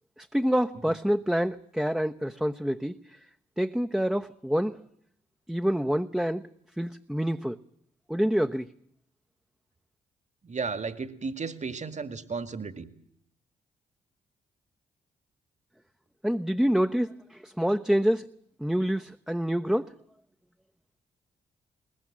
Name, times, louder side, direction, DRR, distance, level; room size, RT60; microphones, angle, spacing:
voice 1, 0.2-3.2 3.6-4.8 5.5-6.5 6.8-7.6 8.1-8.7 16.2-18.3 18.6-19.9, equal, 5° right, 7 dB, 1.0 m, -27 dB
voice 2, 10.4-12.9, right 4 dB, 40° right, 11 dB, 2.1 m, -34 dB
21.5 x 20.5 x 7.5 m, 0.68 s
hypercardioid pair, 40°, 19 cm